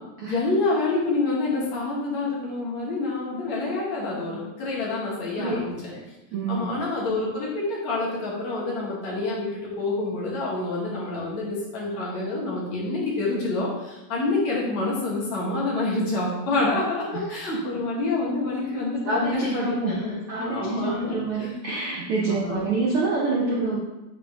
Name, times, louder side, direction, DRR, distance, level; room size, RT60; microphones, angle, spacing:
voice 1, 0.3-5.9 6.5-20.1 20.4-21.1 22.2-22.6, left 2 dB, 55° left, -6 dB, 3.1 m, -27 dB
voice 2, 6.3-6.6 16.5-16.7 17.5-17.6 19.0-23.8, right 3 dB, 70° right, -4 dB, 1.3 m, -27 dB
8.4 x 6.6 x 3.7 m, 1.0 s
omnidirectional pair, 4.1 m